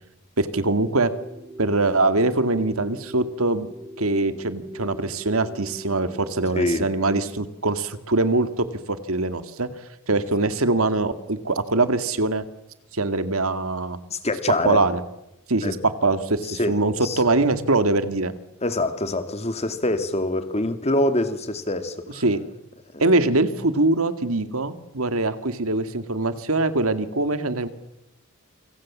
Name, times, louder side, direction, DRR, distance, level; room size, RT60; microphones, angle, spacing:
voice 1, 0.4-1.1 1.6-3.7 4.0-9.7 10.1-12.4 12.9-14.0 14.6-15.0 15.5-18.3 22.2-22.4 23.0-27.7, right 2 dB, 75° right, 2.1 m, -23 dB
sound 1, 0.6-6.3, equal, ahead, 5.4 m, -40 dB
voice 2, 6.5-6.9 14.1-14.8 15.6-15.8 16.4-17.2 18.6-22.2 22.9-23.1, left 1 dB, 30° left, 2.6 m, -25 dB
28.5 x 26.5 x 7.4 m
head